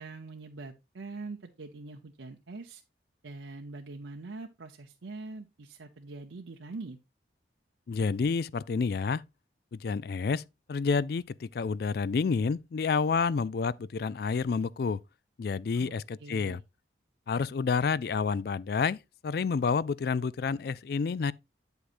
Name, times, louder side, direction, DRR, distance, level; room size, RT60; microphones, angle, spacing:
voice 1, 0.0-2.8 3.2-7.0 15.7-16.6, right 3 dB, 85° right, 0.8 m, -43 dB
voice 2, 7.9-9.2 9.7-10.4 10.7-15.0 15.4-16.6 17.3-21.3, left 5 dB, 55° left, 0.3 m, -29 dB
8.7 x 8.0 x 2.5 m
head